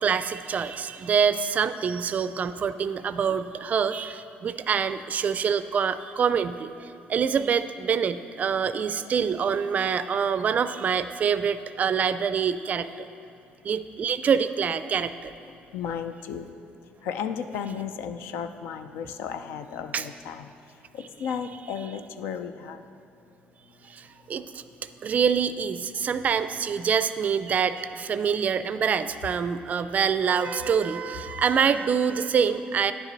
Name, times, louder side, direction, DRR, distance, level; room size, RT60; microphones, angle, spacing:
voice 1, 0.0-13.1 13.6-15.3 19.9-20.1 23.9-24.6 25.0-32.9, right 7 dB, 45° right, 12 dB, 0.3 m, -25 dB
voice 2, 15.7-16.6 17.0-20.5 20.9-22.8 31.3-31.4, left 7 dB, 85° left, 9 dB, 0.4 m, -34 dB
10.0 x 7.2 x 4.0 m, 2.6 s
cardioid pair, 100°, 4 cm